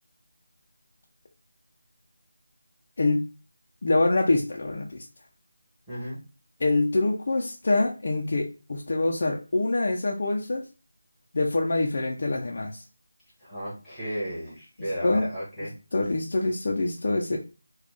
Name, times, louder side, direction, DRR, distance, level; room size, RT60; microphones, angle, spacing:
voice 1, 3.8-5.0 6.6-10.6 11.3-12.8 15.0-15.3 15.9-17.4, left 2 dB, 40° left, 0 dB, 0.4 m, -25 dB
voice 2, 5.9-6.2 13.4-15.7, equal, ahead, -10 dB, 1.2 m, -34 dB
4.0 x 2.3 x 3.1 m, 0.32 s
figure-of-eight pair, 175°, 0 cm